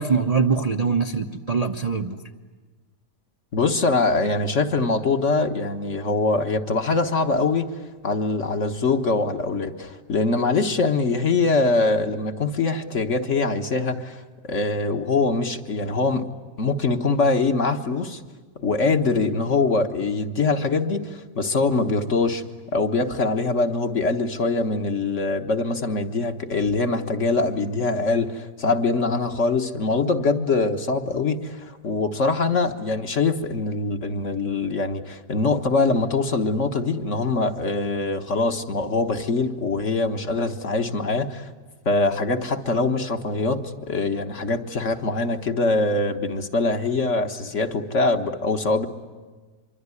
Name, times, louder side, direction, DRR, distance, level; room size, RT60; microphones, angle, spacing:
voice 1, 0.0-2.2, right 5 dB, 30° right, 3 dB, 0.8 m, -23 dB
voice 2, 3.5-7.7 8.0-16.2 16.6-18.2 18.6-22.4 22.7-41.5 41.8-48.9, left 3 dB, 50° left, 5 dB, 1.6 m, -23 dB
25.5 x 24.0 x 9.8 m, 1.3 s
omnidirectional pair, 1.8 m